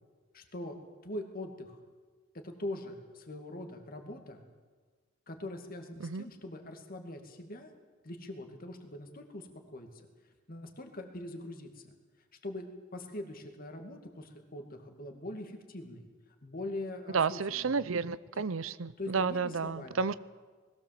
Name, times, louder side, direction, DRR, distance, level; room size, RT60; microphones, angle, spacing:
voice 1, 0.3-1.8 2.4-4.4 5.3-7.7 8.0-10.1 10.5-11.8 12.4-16.1 16.4-17.8 19.0-20.0, left 1 dB, 45° left, 4 dB, 2.3 m, -42 dB
voice 2, 17.1-20.1, right 5 dB, 85° right, 17 dB, 0.7 m, -31 dB
21.0 x 16.5 x 7.5 m, 1.4 s
head